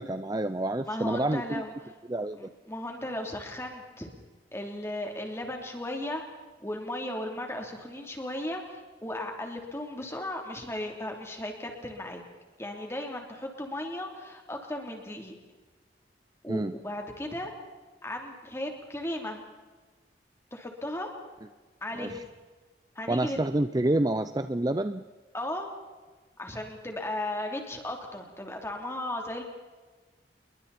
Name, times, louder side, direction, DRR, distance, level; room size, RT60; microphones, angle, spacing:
voice 1, 0.0-1.6 2.1-2.5 16.5-16.7 22.0-22.2 23.1-25.0, right 1 dB, 20° right, 11 dB, 0.6 m, -28 dB
voice 2, 0.9-1.7 2.4-4.1 4.5-6.2 6.6-12.2 12.6-15.4 16.4-17.5 18.0-19.4 20.5-21.1 21.8-22.2 22.9-23.4 25.3-25.7 26.4-29.4, left 1 dB, 15° left, 2 dB, 3.3 m, -36 dB
28.5 x 22.5 x 4.3 m, 1.3 s
head